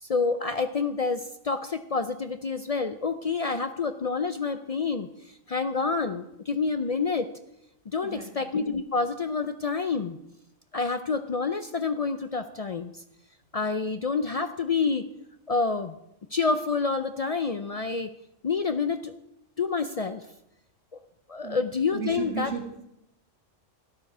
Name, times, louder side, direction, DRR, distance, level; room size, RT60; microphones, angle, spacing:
voice 1, 0.0-5.1 5.5-7.3 7.9-10.2 10.7-12.9 13.5-15.1 15.5-15.9 16.3-18.1 18.4-19.1 19.6-20.2 21.3-22.5, left 4 dB, 55° left, 10 dB, 0.4 m, -28 dB
voice 2, 8.0-8.4 21.4-21.7 22.0-22.9, right 7 dB, 65° right, 3 dB, 2.2 m, -35 dB
12.5 x 9.8 x 6.0 m, 0.84 s
omnidirectional pair, 1.3 m